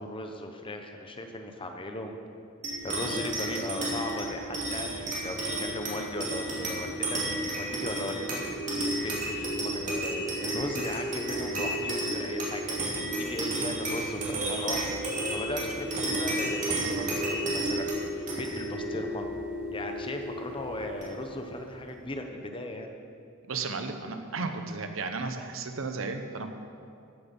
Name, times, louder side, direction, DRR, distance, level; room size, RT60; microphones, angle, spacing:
voice 1, 0.0-2.2 2.8-7.2 7.6-15.0 15.3-19.3 19.7-22.9, left 1 dB, 25° left, 4 dB, 1.0 m, -37 dB
sound 1, 2.6-21.5, right 1 dB, 40° right, 2.9 m, -32 dB
voice 2, 23.5-26.5, right 4 dB, 70° right, 6 dB, 0.9 m, -34 dB
14.0 x 8.2 x 5.4 m, 2.5 s
head